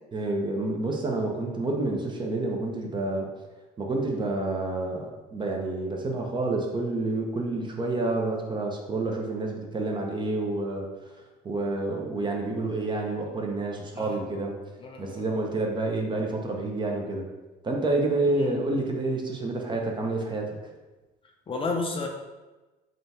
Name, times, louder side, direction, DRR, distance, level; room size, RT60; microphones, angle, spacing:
voice 1, 0.1-3.3 3.8-10.9 11.4-14.5 15.0-17.3 17.6-20.7, right 2 dB, 25° right, 1 dB, 0.6 m, -29 dB
voice 2, 14.8-15.2 18.4-18.6 21.5-22.1, left 3 dB, 30° left, 2 dB, 0.5 m, -31 dB
3.7 x 2.3 x 4.0 m, 1.1 s
cardioid pair, 110°, 17 cm